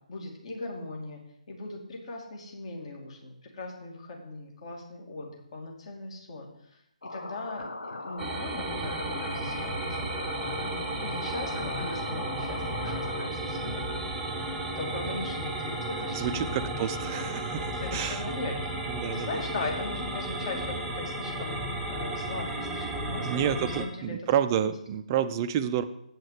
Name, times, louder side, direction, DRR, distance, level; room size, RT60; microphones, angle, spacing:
voice 1, 0.1-1.2 1.5-7.6 8.0-10.6 11.0-13.8 14.7-17.0 17.7-18.7 19.1-21.6 21.9-24.2 24.5-24.6, left 2 dB, 45° left, 0 dB, 2.8 m, -39 dB
sound 1, 7.0-13.3, left 2 dB, 75° left, 0.9 m, -39 dB
sound 2, 8.2-23.9, right 1 dB, 5° right, 1.0 m, -33 dB
voice 2, 16.1-18.2 18.9-19.3 23.2-25.8, right 9 dB, 25° right, 10 dB, 0.6 m, -29 dB
8.5 x 6.3 x 6.7 m, 0.77 s
figure-of-eight pair, 140°, 4 cm